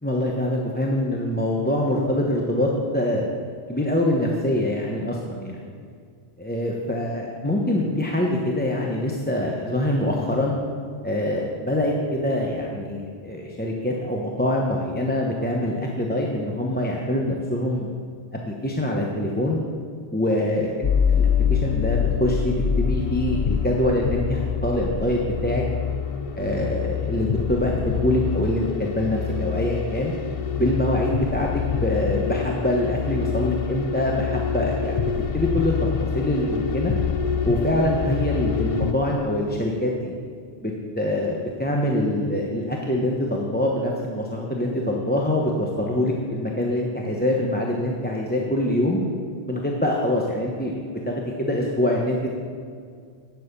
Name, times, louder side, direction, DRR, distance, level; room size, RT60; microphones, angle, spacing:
voice 1, 0.0-3.2 3.7-5.7 6.4-10.6 11.0-17.9 18.5-19.6 20.1-20.9 21.2-25.6 26.4-30.1 30.5-35.7 36.0-36.9 37.5-40.1 40.6-49.0 49.5-52.3, left 1 dB, 10° left, -2 dB, 0.9 m, -24 dB
sound 1, 20.8-38.9, left 7 dB, 45° left, 0.5 m, -25 dB
10.5 x 6.9 x 6.8 m, 2.2 s
omnidirectional pair, 1.1 m